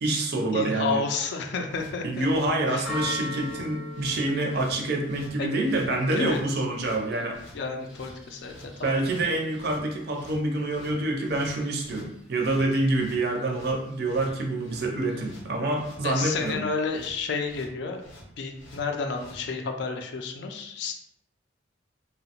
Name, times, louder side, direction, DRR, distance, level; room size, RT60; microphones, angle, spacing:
voice 1, 0.0-1.0 2.0-7.4 8.8-16.6, right 2 dB, 55° right, 2 dB, 0.5 m, -27 dB
voice 2, 0.5-2.3 2.7-2.9 5.4-5.5 6.1-6.4 7.5-8.5 8.8-9.1 16.0-18.0 18.4-20.9, left 4 dB, 60° left, 4 dB, 0.4 m, -31 dB
sound 1, 1.6-19.4, left 1 dB, 85° left, 0.8 m, -50 dB
Church bell, 1.8-15.6, left 2 dB, ahead, 0.5 m, -44 dB
2.8 x 2.0 x 2.8 m, 0.74 s
head